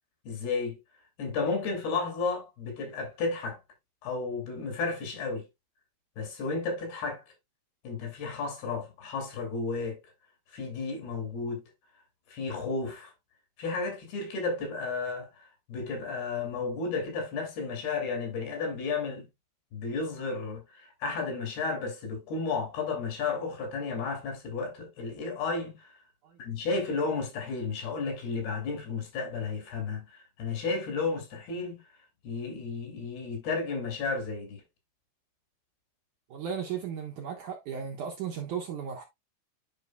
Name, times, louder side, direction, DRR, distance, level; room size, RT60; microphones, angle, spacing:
voice 1, 0.2-0.8 1.2-3.6 4.0-5.4 6.2-7.2 7.8-10.0 10.5-11.6 12.3-13.1 13.6-19.3 19.7-25.9 26.4-31.8 32.2-34.6, left 4 dB, 70° left, 4.5 m, -33 dB
voice 2, 36.3-39.0, right 7 dB, 70° right, 2.0 m, -35 dB
10.5 x 5.4 x 2.3 m
omnidirectional pair, 4.7 m